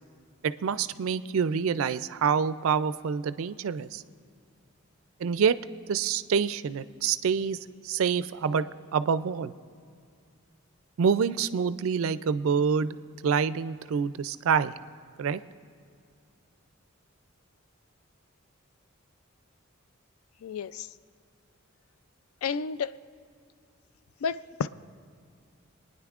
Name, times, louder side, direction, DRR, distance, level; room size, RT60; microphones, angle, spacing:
voice 1, 0.4-4.0 5.2-5.6 5.9-7.6 7.8-8.6 8.9-9.5 11.0-13.0 13.2-14.7 15.2-15.4, right 6 dB, 70° right, 15 dB, 0.4 m, -26 dB
voice 2, 20.4-20.9 22.4-22.9 24.2-24.7, left 6 dB, 80° left, 15 dB, 0.3 m, -31 dB
27.0 x 9.7 x 2.4 m, 2.2 s
head